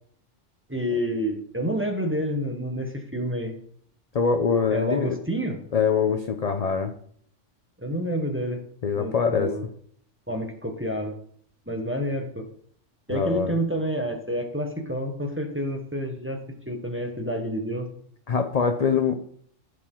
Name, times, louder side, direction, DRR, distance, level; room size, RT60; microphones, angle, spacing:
voice 1, 0.7-3.6 4.7-5.6 7.8-8.6 8.9-9.7 10.3-11.1 11.7-12.5 13.1-16.4 16.7-17.9, equal, 10° right, 3 dB, 1.1 m, -29 dB
voice 2, 4.1-5.2 5.7-6.9 8.8-9.5 13.1-13.5 18.3-19.2, left 6 dB, 45° left, 6 dB, 0.6 m, -23 dB
14.5 x 5.0 x 3.8 m, 0.63 s
omnidirectional pair, 1.3 m